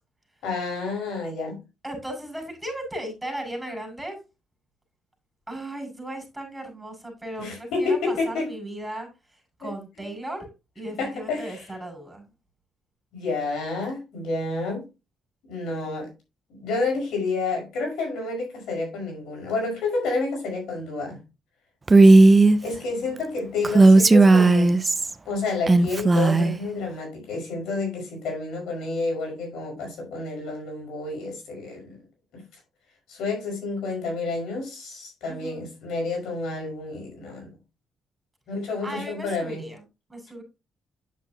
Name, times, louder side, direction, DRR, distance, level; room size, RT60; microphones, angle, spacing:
voice 1, 0.4-1.6 7.4-8.5 9.6-9.7 11.0-11.7 13.1-14.8 15.5-16.1 16.5-21.2 22.6-24.7 25.3-32.0 32.3-32.4 33.1-37.5 38.5-39.6, left 3 dB, 85° left, 5.4 m, -29 dB
voice 2, 1.8-4.2 5.5-12.2 23.0-23.2 35.2-35.7 38.8-39.8 40.1-40.4, right 1 dB, 5° right, 5.6 m, -36 dB
Female speech woman speaking, 21.9-22.6 23.6-25.1 25.7-26.5, right 2 dB, 25° right, 0.6 m, -14 dB
9.3 x 7.1 x 2.9 m
cardioid pair, 90°, 0 cm